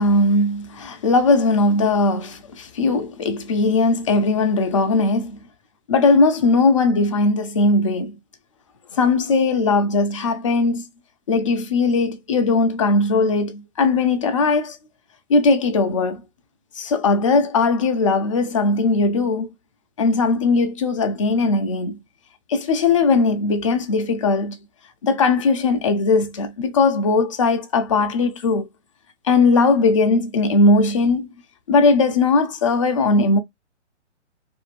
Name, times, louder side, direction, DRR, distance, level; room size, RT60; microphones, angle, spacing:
voice 1, 0.0-5.4 5.9-8.1 8.9-10.8 11.3-14.8 15.3-16.2 16.8-19.5 20.0-22.0 22.5-24.6 25.0-28.7 29.3-31.3 31.7-33.4, left 3 dB, 30° left, 0.4 m, -19 dB
2.5 x 2.5 x 3.1 m
hypercardioid pair, 140°, 36 cm